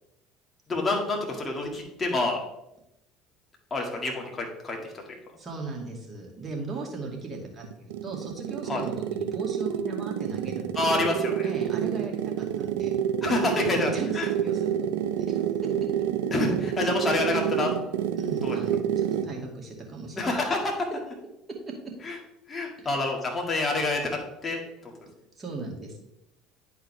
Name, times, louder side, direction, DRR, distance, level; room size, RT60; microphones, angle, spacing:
voice 1, 0.7-2.4 3.7-5.0 8.7-8.8 10.7-11.5 13.2-14.3 16.3-17.7 18.4-18.6 20.2-20.9 22.0-22.2 22.5-24.0 24.4-24.9, left 2 dB, 25° left, 0 dB, 2.0 m, -27 dB
voice 2, 5.4-11.1 11.4-12.9 13.7-15.4 18.2-20.2 21.7-21.9 22.8-22.9 25.4-26.0, right 3 dB, 30° right, -1 dB, 2.3 m, -37 dB
sound 1, 7.6-19.4, right 9 dB, 80° right, 0.4 m, -28 dB
10.5 x 4.7 x 3.4 m, 0.88 s
hypercardioid pair, 70°, 0 cm